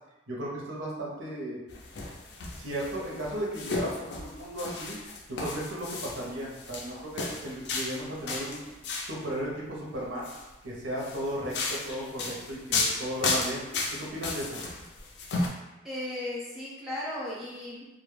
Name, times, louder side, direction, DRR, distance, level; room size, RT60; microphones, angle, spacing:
voice 1, 0.3-1.6 2.5-5.0 5.3-8.6 9.1-10.3 10.6-13.7 13.9-14.6, right 1 dB, 85° right, -3 dB, 0.7 m, -35 dB
sound 1, 1.7-9.2 10.0-10.4 11.0-15.5, left 3 dB, 60° left, 0.4 m, -34 dB
voice 2, 15.8-17.9, left 1 dB, ahead, -7 dB, 0.5 m, -36 dB
2.2 x 2.0 x 3.1 m, 1.0 s
head